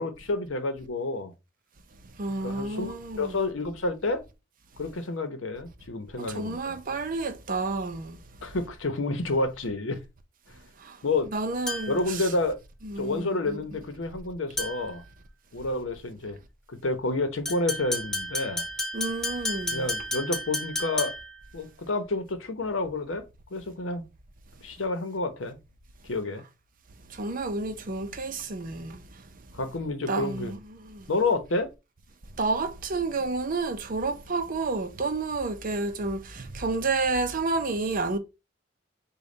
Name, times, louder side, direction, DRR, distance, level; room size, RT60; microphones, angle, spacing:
voice 1, 0.0-1.3 2.4-4.2 4.8-6.8 8.4-10.0 11.0-11.3 11.9-12.6 13.0-15.0 15.5-16.4 16.7-18.7 19.7-21.1 21.5-23.2 23.5-24.0 24.6-25.6 26.0-26.4 29.5-30.5 31.1-31.7, left 2 dB, 90° left, 0.9 m, -29 dB
voice 2, 2.2-3.4 6.2-8.2 10.8-11.0 11.3-12.3 12.8-13.8 18.9-19.9 27.1-29.0 30.1-31.1 32.4-38.2, right 3 dB, 45° right, 0.6 m, -30 dB
sound 1, 11.7-12.1 14.6-15.0 17.5-21.4, left 1 dB, 5° left, 1.7 m, -32 dB
5.3 x 2.3 x 3.9 m
head